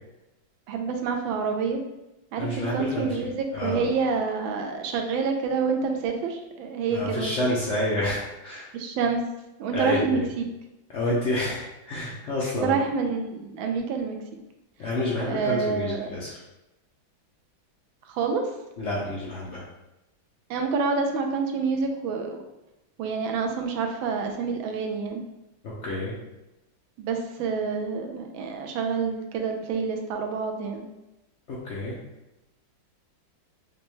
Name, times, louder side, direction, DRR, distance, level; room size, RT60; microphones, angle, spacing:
voice 1, 0.7-1.8 2.3-7.5 8.7-9.2 9.6-10.4 12.6-14.2 15.3-16.1 18.1-18.4 20.5-22.4 23.0-25.2 27.0-30.9, right 5 dB, 85° right, 3 dB, 1.3 m, -27 dB
voice 2, 2.4-3.2 3.5-3.9 6.9-8.7 9.7-10.2 10.9-12.8 14.8-16.4 18.8-19.6 25.8-26.1 31.5-32.0, left 1 dB, 80° left, -5 dB, 0.6 m, -29 dB
5.1 x 2.2 x 3.0 m, 0.96 s
omnidirectional pair, 2.1 m